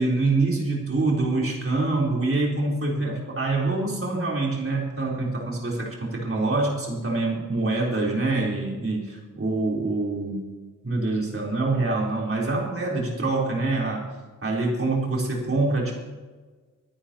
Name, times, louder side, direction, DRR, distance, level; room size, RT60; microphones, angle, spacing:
voice 1, 0.0-10.5 10.8-14.1 14.4-15.9, right 2 dB, 40° right, -3 dB, 4.0 m, -25 dB
24.0 x 10.5 x 3.0 m, 1.4 s
wide cardioid pair, 95°, 32 cm